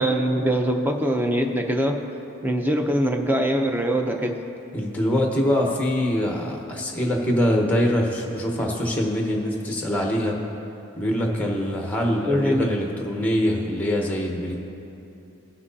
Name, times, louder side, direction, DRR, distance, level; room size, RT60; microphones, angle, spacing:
voice 1, 0.0-2.0 2.4-4.4 12.3-12.7, equal, 10° right, 3 dB, 0.5 m, -22 dB
voice 2, 4.7-10.3 11.0-14.5, equal, 5° left, 0 dB, 0.9 m, -24 dB
18.0 x 6.0 x 2.7 m, 2.8 s
head